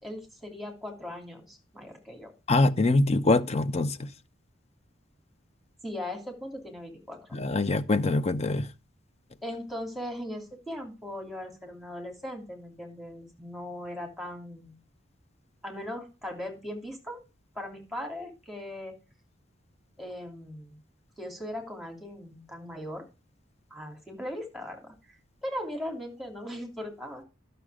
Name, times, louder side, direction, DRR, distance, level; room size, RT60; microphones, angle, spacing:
voice 1, 0.0-2.3 5.8-7.2 9.4-14.7 15.6-17.2 17.5-18.9 20.0-20.8 21.2-23.0 23.7-24.9 25.4-27.2, left 1 dB, ahead, 3.1 m, -39 dB
voice 2, 2.5-4.1 7.3-8.7, left 2 dB, 35° left, 0.7 m, -24 dB
11.5 x 6.8 x 4.9 m
head